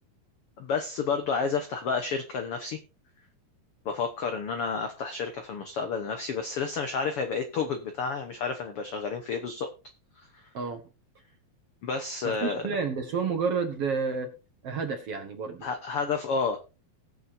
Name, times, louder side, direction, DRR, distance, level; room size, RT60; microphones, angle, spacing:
voice 1, 0.6-2.8 3.8-9.7 11.8-12.6 15.6-16.6, left 5 dB, 80° left, 6 dB, 1.2 m, -30 dB
voice 2, 12.2-14.3 14.6-15.7, right 5 dB, 55° right, 5 dB, 2.0 m, -30 dB
20.5 x 6.9 x 2.7 m, 0.31 s
omnidirectional pair, 4.2 m